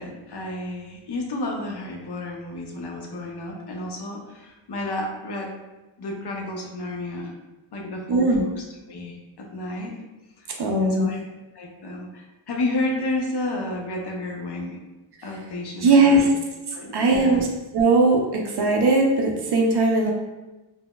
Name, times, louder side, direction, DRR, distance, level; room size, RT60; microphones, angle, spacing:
voice 1, 0.0-5.5 6.0-7.3 7.7-10.0 10.4-10.5 10.8-11.2 11.5-14.8 15.2-16.3 16.7-17.4, left 2 dB, 60° left, 1 dB, 0.6 m, -31 dB
voice 2, 8.1-8.4 10.6-11.1 15.8-16.3 16.9-17.5 17.7-20.1, right 2 dB, 60° right, 0 dB, 0.5 m, -19 dB
3.8 x 2.0 x 2.2 m, 1.1 s
wide cardioid pair, 115°, 46 cm